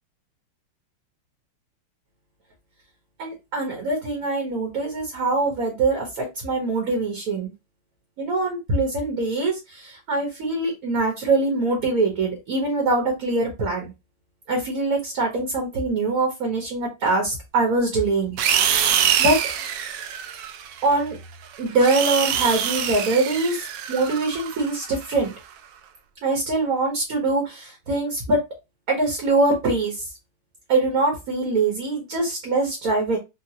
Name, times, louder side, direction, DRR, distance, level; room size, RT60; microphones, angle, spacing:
voice 1, 3.2-7.5 8.2-13.9 14.5-18.4 19.2-19.4 20.8-21.2 21.6-25.3 26.2-28.4 28.9-30.0 30.7-33.2, right 3 dB, 55° right, 1 dB, 1.2 m, -23 dB
sound 1, 18.4-20.9 21.5-25.3, right 9 dB, 80° right, 0.9 m, -25 dB
3.7 x 2.3 x 2.8 m, 0.24 s
omnidirectional pair, 2.4 m